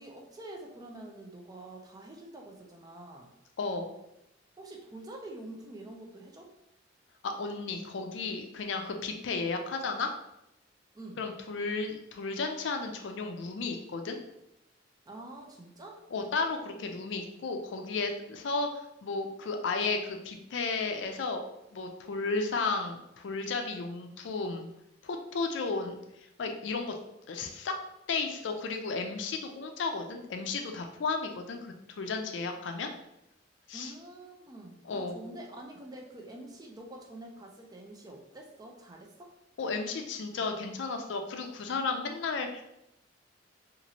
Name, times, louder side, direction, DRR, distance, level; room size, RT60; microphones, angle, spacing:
voice 1, 0.0-3.3 4.6-6.5 10.9-11.2 15.1-16.0 33.7-39.3, right 1 dB, 20° right, 1 dB, 0.4 m, -46 dB
voice 2, 3.6-3.9 7.2-10.1 11.2-14.2 16.1-24.7 25.0-26.0 26.4-26.9 27.3-27.8 28.1-32.9 33.7-33.9 34.9-35.2 39.6-42.6, left 4 dB, 70° left, 5 dB, 0.4 m, -33 dB
2.9 x 2.5 x 2.7 m, 0.84 s
head